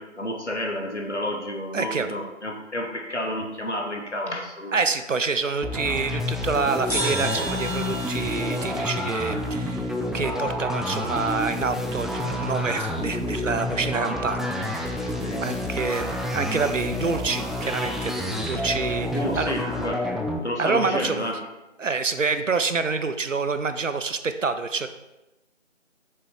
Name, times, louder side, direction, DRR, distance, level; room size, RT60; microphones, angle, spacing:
voice 1, 0.0-4.8 15.2-15.7 19.1-20.1 20.4-21.5, left 1 dB, 65° left, 2 dB, 1.2 m, -30 dB
voice 2, 1.7-2.1 4.7-15.1 15.4-19.1 19.4-19.5 20.6-21.2 21.8-24.9, right 4 dB, 75° right, 10 dB, 0.6 m, -27 dB
sound 1, 5.6-20.4, left 1 dB, ahead, 0.4 m, -29 dB
sound 2, 6.9-10.4, right 1 dB, 30° left, 1.9 m, -33 dB
6.7 x 4.1 x 3.6 m, 0.99 s
figure-of-eight pair, 175°, 38 cm